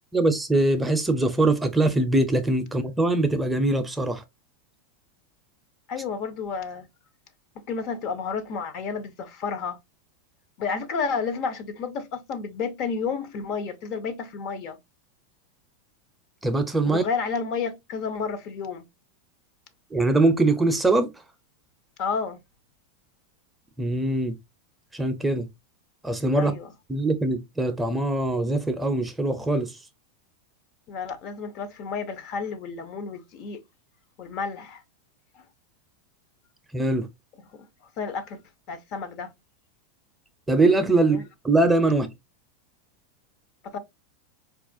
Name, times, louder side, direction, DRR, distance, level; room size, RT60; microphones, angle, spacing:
voice 1, 0.1-4.2 16.4-17.0 19.9-21.1 23.8-24.4 24.9-25.5 26.0-26.5 26.9-29.7 36.7-37.1 40.5-42.1, right 2 dB, 10° right, 0.5 m, -22 dB
voice 2, 5.9-6.9 7.6-9.8 10.6-14.8 16.9-18.8 22.0-22.4 26.3-26.7 30.9-33.6 34.2-34.8 37.4-37.5 38.0-38.4 38.7-39.3 41.1-41.2 43.6-43.8, left 5 dB, 50° left, 0.6 m, -31 dB
4.1 x 2.4 x 2.5 m
hypercardioid pair, 110°, 0 cm